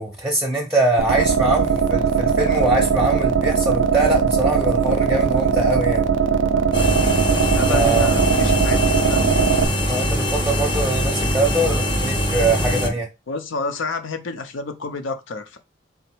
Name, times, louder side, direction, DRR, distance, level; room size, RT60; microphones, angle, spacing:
voice 1, 0.0-6.1 7.7-8.1 9.9-13.1, right 2 dB, 5° right, 0.7 m, -22 dB
sound 1, 1.0-9.6, right 6 dB, 70° right, 0.5 m, -19 dB
sound 2, 6.7-12.9, equal, 25° left, 0.9 m, -22 dB
voice 2, 7.4-9.2 13.3-15.6, left 3 dB, 70° left, 0.7 m, -30 dB
4.0 x 2.1 x 4.4 m
head